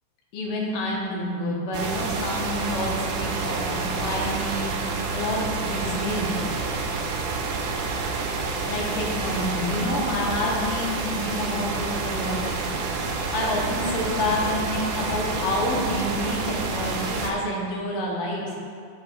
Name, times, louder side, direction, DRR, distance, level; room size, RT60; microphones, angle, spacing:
voice 1, 0.3-6.3 8.3-12.9 13.3-18.4, left 1 dB, 85° left, -3 dB, 2.8 m, -28 dB
sound 1, 1.7-17.3, right 4 dB, 85° right, 2.2 m, -28 dB
10.5 x 6.6 x 2.4 m, 2.3 s
omnidirectional pair, 3.7 m